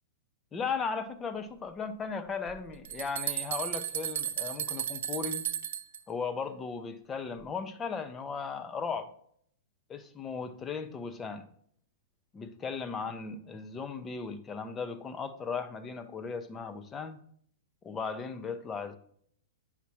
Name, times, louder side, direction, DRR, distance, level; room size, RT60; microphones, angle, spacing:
voice 1, 0.5-5.4 6.1-9.1 9.9-11.5 12.3-17.2 17.8-19.0, left 5 dB, 20° left, 10 dB, 0.7 m, -37 dB
sound 1, 2.5-6.0, right 10 dB, 65° right, 0.6 m, -34 dB
8.3 x 5.7 x 3.0 m, 0.64 s
hypercardioid pair, 115°, 0 cm